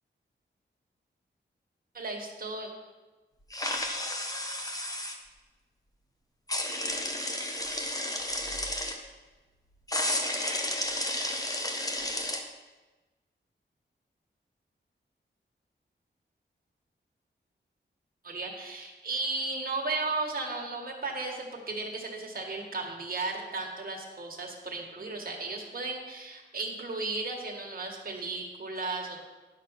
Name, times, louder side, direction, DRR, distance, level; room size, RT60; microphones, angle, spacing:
voice 1, 1.9-2.7 18.2-29.2, right 3 dB, 50° right, 0 dB, 1.9 m, -35 dB
sound 1, 3.5-5.2 6.5-9.0 9.9-12.4, left 1 dB, 20° left, 1.1 m, -32 dB
10.5 x 6.0 x 5.8 m, 1.2 s
wide cardioid pair, 100°, 19 cm